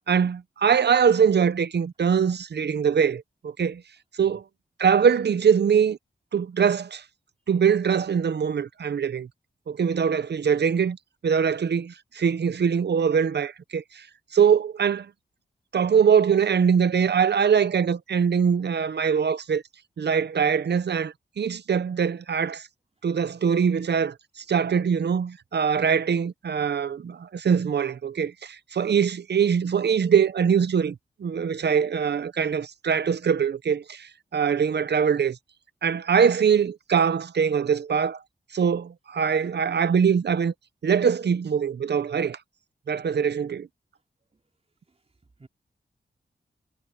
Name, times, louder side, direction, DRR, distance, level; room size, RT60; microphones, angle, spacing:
voice 1, 0.1-3.8 4.2-4.4 4.8-6.0 6.3-7.0 7.5-9.3 9.7-11.0 11.2-14.0 14.3-15.1 15.7-19.6 20.0-22.6 23.0-35.4 35.8-38.2 38.5-40.5 40.8-42.4 42.9-43.7, right 7 dB, 70° right, 0.8 m, -23 dB
voice 2, 4.2-4.4 44.3-44.4 44.9-45.0 45.4-45.5, right 3 dB, 35° right, 3.7 m, -53 dB
wide cardioid pair, 125°, 18 cm